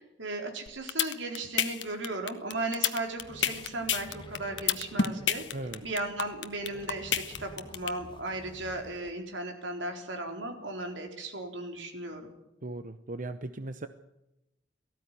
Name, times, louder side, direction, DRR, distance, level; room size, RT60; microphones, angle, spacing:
voice 1, 0.0-5.4 5.8-12.3, right 2 dB, 80° right, 3 dB, 4.1 m, -36 dB
sound 1, 0.7-7.9, left 8 dB, 70° left, 1.3 m, -28 dB
sound 2, 3.1-9.1, left 1 dB, 25° left, 1.6 m, -50 dB
voice 2, 5.5-5.8 12.6-13.9, right 2 dB, 45° right, 10 dB, 0.8 m, -38 dB
18.5 x 15.0 x 9.8 m, 0.89 s
head